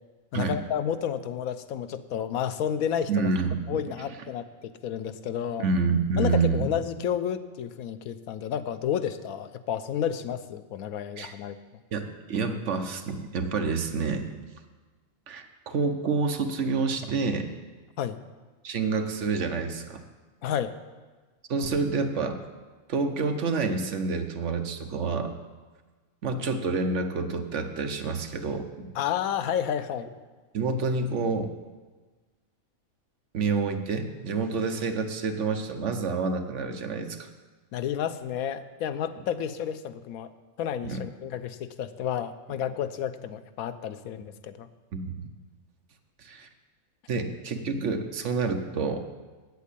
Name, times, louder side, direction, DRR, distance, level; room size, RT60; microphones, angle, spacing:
voice 1, 0.3-3.3 3.7-5.7 6.2-11.6 18.0-18.2 20.4-20.7 29.0-30.1 37.7-40.3 40.6-44.7, left 9 dB, 90° left, 11 dB, 1.1 m, -31 dB
voice 2, 3.1-3.8 5.6-6.7 11.2-11.3 11.9-14.3 15.3-17.5 18.6-20.0 21.5-22.4 22.9-25.3 26.2-28.9 30.5-31.5 33.3-37.3 40.8-41.0 44.9-45.2 46.2-46.5 47.1-49.0, right 4 dB, 60° right, 6 dB, 1.1 m, -28 dB
8.3 x 8.3 x 8.4 m, 1.3 s
omnidirectional pair, 1.4 m